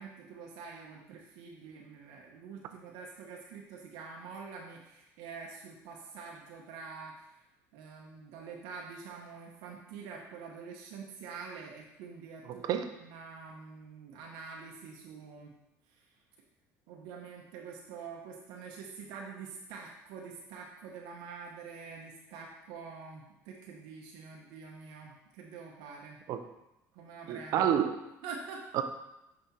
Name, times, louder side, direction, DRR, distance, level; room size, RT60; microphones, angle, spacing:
voice 1, 0.0-7.4 7.7-15.6 15.9-16.0 16.9-26.2 26.9-27.7 28.2-28.7, right 5 dB, 80° right, -1 dB, 1.0 m, -46 dB
voice 2, 27.3-28.0 28.7-28.8, right 9 dB, 60° right, 8 dB, 0.6 m, -28 dB
5.9 x 4.9 x 4.2 m, 0.90 s
supercardioid pair, 105°, 7 cm